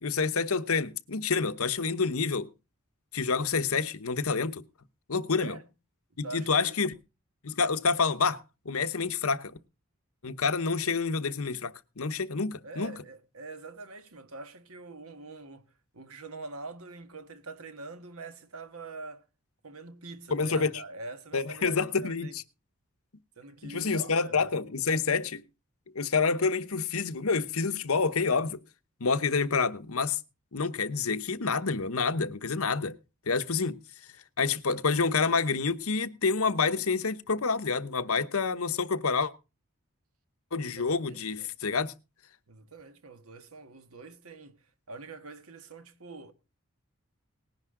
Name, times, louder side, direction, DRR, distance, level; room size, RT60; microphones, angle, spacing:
voice 1, 0.0-2.5 3.1-4.6 5.1-5.6 6.2-6.9 7.4-9.6 10.2-12.9 20.3-20.7 21.3-22.3 23.6-25.4 25.9-28.6 29.0-30.2 30.5-33.0 33.3-33.8 34.4-39.3 40.5-41.9, left 4 dB, 80° left, 1.0 m, -28 dB
voice 2, 5.4-5.7 6.2-6.8 12.6-15.7 15.9-19.2 19.6-22.4 23.4-24.7 40.6-41.5 42.5-44.6 44.9-46.3, right 3 dB, 85° right, 1.5 m, -44 dB
19.0 x 10.5 x 3.7 m
head